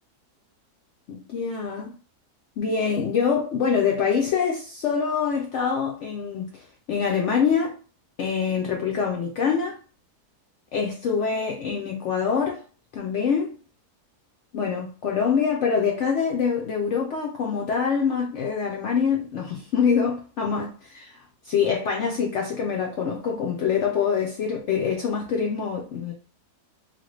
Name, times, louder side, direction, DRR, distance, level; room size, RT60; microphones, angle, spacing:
voice 1, 1.1-1.9 2.6-6.6 6.9-7.8 8.2-9.8 10.7-12.6 12.9-13.5 14.5-26.1, left 6 dB, 75° left, 0.6 m, -25 dB
2.9 x 2.5 x 3.0 m
omnidirectional pair, 1.7 m